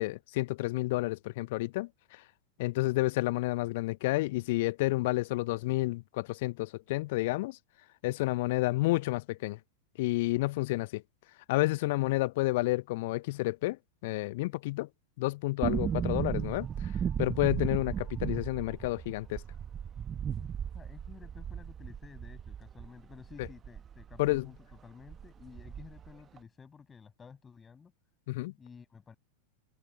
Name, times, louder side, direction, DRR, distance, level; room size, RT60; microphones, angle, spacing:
voice 1, 0.0-1.9 2.6-7.6 8.0-9.6 10.0-11.0 11.5-13.8 14.0-14.9 15.2-16.7 17.2-19.4 23.4-23.5 24.2-24.5 28.3-28.5, left 20 dB, 50° left, 0.8 m, -30 dB
sound 1, 15.6-24.4 24.7-24.8 25.1-26.1 26.4-26.5, right 8 dB, 25° right, 1.2 m, -35 dB
voice 2, 20.7-27.9 28.6-29.2, left 6 dB, 15° left, 7.1 m, -52 dB
figure-of-eight pair, 90°, 0 cm